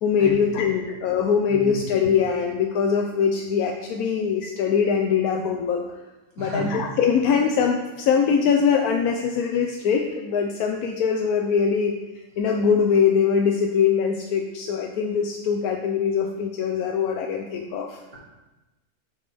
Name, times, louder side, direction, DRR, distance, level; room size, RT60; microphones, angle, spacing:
voice 1, 0.0-5.8 6.4-11.9 12.4-18.0, left 6 dB, 85° left, 2 dB, 1.1 m, -22 dB
voice 2, 6.4-6.8, right 2 dB, 75° right, -5 dB, 2.5 m, -32 dB
8.1 x 5.9 x 3.4 m, 1.1 s
omnidirectional pair, 1.5 m